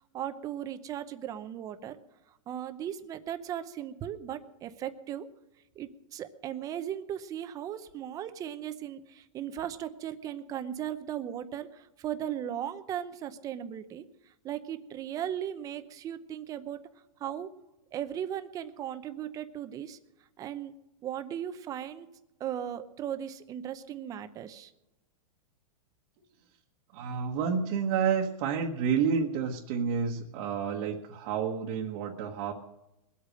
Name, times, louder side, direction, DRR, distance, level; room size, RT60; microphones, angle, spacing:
voice 1, 0.1-2.0 2.5-5.3 5.8-14.0 14.4-16.8 17.2-17.5 17.9-20.0 20.4-20.7 21.0-22.1 22.4-24.7, right 10 dB, 20° right, 10 dB, 0.7 m, -37 dB
voice 2, 26.9-32.5, right 6 dB, 40° right, -1 dB, 1.3 m, -29 dB
21.0 x 8.4 x 6.3 m, 0.93 s
supercardioid pair, 165°, 19 cm